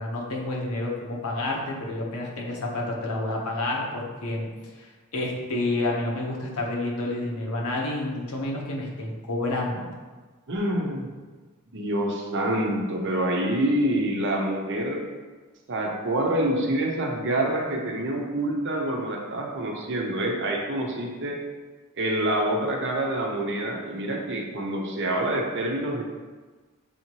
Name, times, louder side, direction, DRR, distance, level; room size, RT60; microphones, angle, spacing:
voice 1, 0.0-9.9, left 2 dB, 80° left, -2 dB, 1.0 m, -29 dB
voice 2, 10.5-11.1 11.7-15.1 15.7-21.4 21.9-26.0, right 1 dB, 55° right, 0 dB, 0.7 m, -26 dB
6.3 x 2.8 x 3.0 m, 1.3 s
head